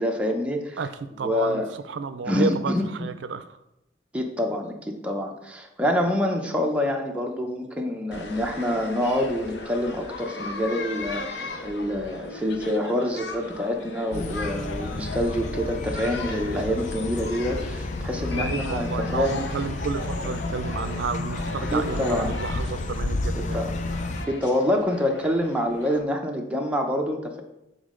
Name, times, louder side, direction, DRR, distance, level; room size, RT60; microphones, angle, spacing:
voice 1, 0.0-0.8 1.2-1.7 2.3-3.1 4.1-19.4 21.7-22.4 23.3-23.7 24.3-27.4, left 1 dB, 5° right, 1 dB, 0.6 m, -26 dB
voice 2, 0.8-3.6 18.3-23.6, right 5 dB, 80° right, 11 dB, 0.4 m, -31 dB
sound 1, 8.1-26.0, left 2 dB, 70° left, 0.7 m, -37 dB
sound 2, 14.1-24.3, left 2 dB, 40° left, 0.4 m, -31 dB
7.1 x 4.0 x 3.7 m, 0.88 s
head